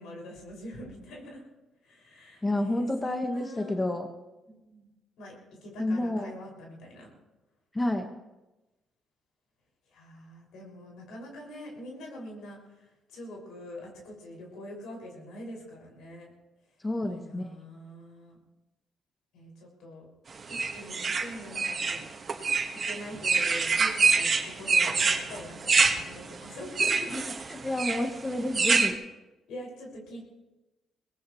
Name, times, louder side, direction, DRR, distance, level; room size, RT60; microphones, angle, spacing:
voice 1, 0.0-1.4 1.8-3.8 4.5-4.9 5.2-5.3 5.6-7.1 9.9-12.6 13.1-16.3 17.0-18.4 19.3-20.1 20.7-22.1 22.8-24.3 24.6-26.9 29.5-30.2, left 1 dB, 85° left, -1 dB, 6.2 m, -44 dB
voice 2, 2.4-4.1 5.8-6.3 7.7-8.1 16.8-17.5 27.1-28.9, left 1 dB, 15° left, 4 dB, 1.5 m, -30 dB
sound 1, 20.5-28.9, right 4 dB, 40° right, 1.9 m, -26 dB
22.5 x 18.5 x 3.2 m, 1.1 s
cardioid pair, 90°, 0 cm